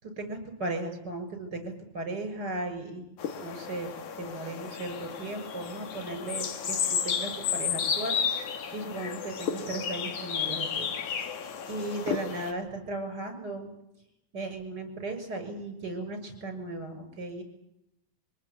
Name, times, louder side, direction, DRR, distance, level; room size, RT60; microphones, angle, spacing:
voice 1, 0.0-3.0 3.4-3.9 4.2-10.9 11.7-13.7 14.3-17.4, right 2 dB, 25° right, 7 dB, 6.8 m, -36 dB
sound 1, 3.2-12.5, left 7 dB, 55° left, 3.0 m, -32 dB
25.0 x 19.0 x 8.4 m, 0.84 s
omnidirectional pair, 4.3 m